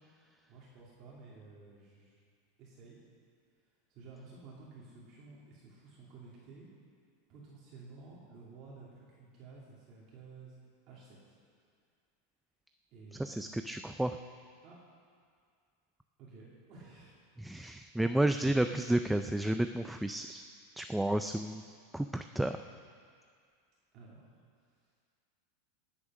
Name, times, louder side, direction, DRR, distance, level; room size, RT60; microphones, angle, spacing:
voice 1, 0.5-2.2 2.6-3.0 3.9-6.7 7.3-10.6 10.9-11.3 12.9-13.5 14.6-14.8 16.2-17.2 17.5-18.0 23.9-24.3 24.8-24.9, right 3 dB, 35° right, -5 dB, 2.7 m, -53 dB
voice 2, 13.2-14.2 17.4-20.4 20.8-21.6 21.9-22.6, right 1 dB, 5° right, 8 dB, 0.3 m, -31 dB
18.5 x 8.6 x 6.3 m, 2.1 s
supercardioid pair, 160°, 0 cm